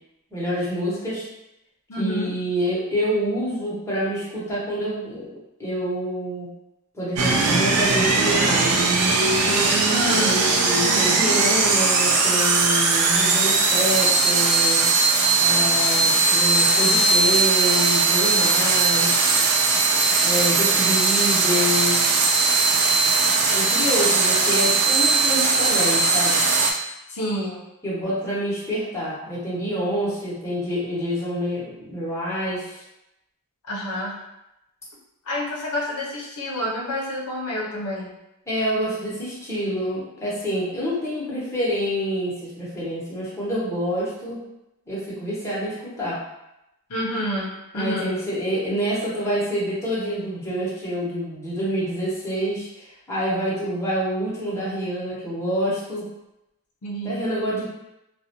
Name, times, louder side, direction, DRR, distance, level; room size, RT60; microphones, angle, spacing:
voice 1, 0.3-1.3 2.0-5.3 5.6-6.5 6.9-8.7 10.0-14.9 15.4-19.3 20.2-22.0 23.5-26.4 27.8-32.8 38.5-44.4 44.9-46.2 47.7-56.0 57.0-57.6, equal, 10° left, -9 dB, 0.8 m, -27 dB
voice 2, 1.9-2.3 9.9-10.4 27.1-27.6 33.7-34.2 35.3-38.2 46.9-48.2 56.8-57.2, equal, 75° left, -3 dB, 0.6 m, -28 dB
sound 1, 7.2-26.7, right 3 dB, 90° right, 0.4 m, -19 dB
2.4 x 2.1 x 2.8 m, 0.89 s
head